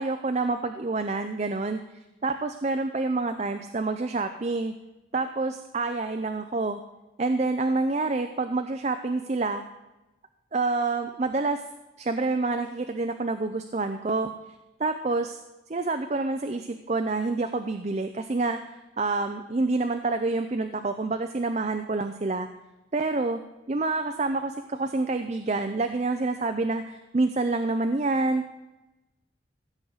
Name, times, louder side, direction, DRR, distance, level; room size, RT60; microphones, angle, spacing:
voice 1, 0.0-1.8 2.2-4.7 5.1-6.8 7.2-9.6 10.5-11.6 12.0-14.3 14.8-15.4 15.7-18.6 19.0-22.5 22.9-23.4 23.7-28.6, right 3 dB, 40° right, 7 dB, 0.5 m, -27 dB
15.5 x 7.7 x 4.0 m, 1.0 s
head